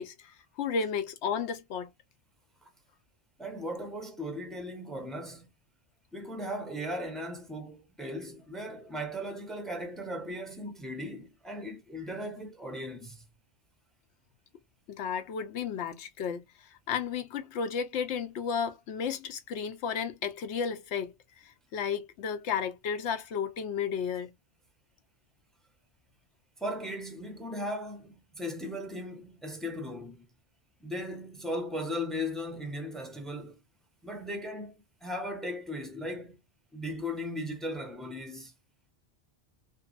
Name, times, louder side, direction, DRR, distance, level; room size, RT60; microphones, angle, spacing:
voice 1, 0.0-1.9 14.9-16.4 16.9-21.1 21.4-24.3, left 6 dB, 85° left, 0.9 m, -33 dB
voice 2, 3.4-5.5 6.1-13.2 26.6-30.3 30.8-33.6 34.0-36.4 36.7-38.5, equal, ahead, 0.5 m, -37 dB
2.7 x 2.5 x 2.3 m
omnidirectional pair, 1.1 m